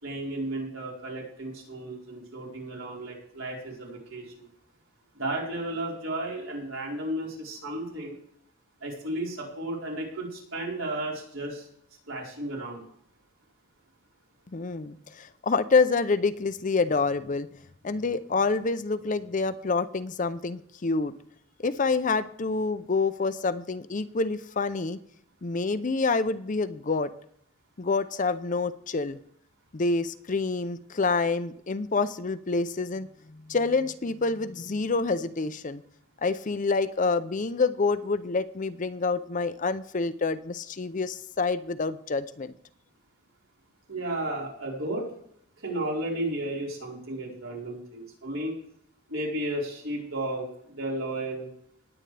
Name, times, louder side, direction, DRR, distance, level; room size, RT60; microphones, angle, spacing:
voice 1, 0.0-4.5 5.2-8.2 8.8-11.7 12.1-12.8 43.9-45.1 45.6-48.5 49.1-51.5, right 1 dB, 75° right, -3 dB, 4.5 m, -33 dB
voice 2, 14.5-17.5 17.8-21.1 21.6-25.0 25.4-27.1 27.8-29.2 29.7-35.8 36.2-42.5, left 4 dB, 35° left, 13 dB, 0.5 m, -27 dB
19.5 x 8.9 x 3.4 m, 0.69 s
head